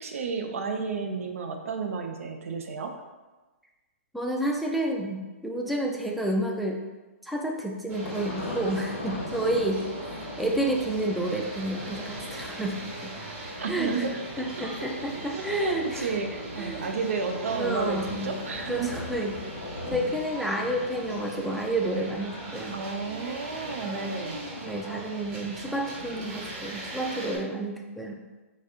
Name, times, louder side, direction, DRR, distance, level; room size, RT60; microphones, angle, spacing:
voice 1, 0.0-2.9 13.6-14.2 15.3-18.9 22.7-24.4, right 4 dB, 75° right, 5 dB, 0.5 m, -32 dB
voice 2, 4.1-6.8 7.2-9.8 10.4-12.7 13.7-13.9 14.4-16.1 16.6-16.8 17.5-18.3 18.7-19.3 19.9-22.8 23.8-24.0 24.6-28.2, right 1 dB, ahead, 0 dB, 0.4 m, -30 dB
Thunder, 7.9-20.0, left 2 dB, 85° left, 0.9 m, -41 dB
sound 1, 7.9-27.4, right 1 dB, 30° right, 1.0 m, -39 dB
4.1 x 2.5 x 3.6 m, 1.2 s
hypercardioid pair, 140°, 8 cm